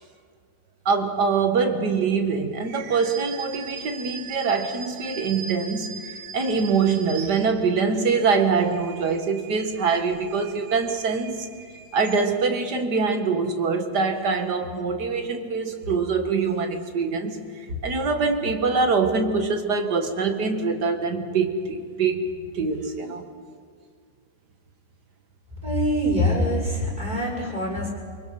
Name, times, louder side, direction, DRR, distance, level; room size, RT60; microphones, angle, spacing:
voice 1, 0.9-11.5 11.9-17.4 17.7-22.3 22.5-23.2, right 4 dB, 50° right, 6 dB, 2.2 m, -24 dB
sound 1, 2.6-7.9 8.4-12.6, right 6 dB, 80° right, 2.2 m, -41 dB
voice 2, 25.6-27.9, equal, 20° right, -4 dB, 6.5 m, -24 dB
24.5 x 23.5 x 5.9 m, 2.1 s
omnidirectional pair, 2.3 m